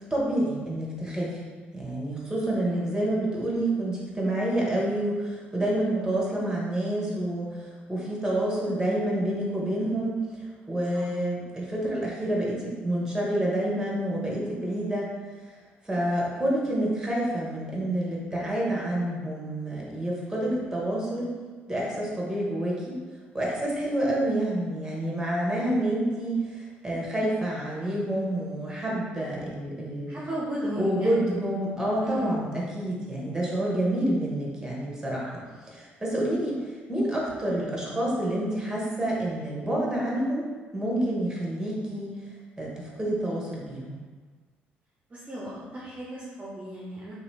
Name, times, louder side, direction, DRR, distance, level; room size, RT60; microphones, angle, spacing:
voice 1, 0.1-1.4 1.7-10.2 10.7-15.1 15.8-21.3 21.7-22.9 23.3-30.1 30.8-36.6 36.9-40.4 40.7-42.2 42.6-44.0, right 1 dB, 10° right, -4 dB, 1.1 m, -28 dB
voice 2, 2.6-3.1 10.9-11.2 30.1-31.2 32.0-32.3 45.1-47.1, right 1 dB, 30° right, -6 dB, 0.6 m, -35 dB
2.7 x 2.7 x 3.3 m, 1.4 s
hypercardioid pair, 50°, 6 cm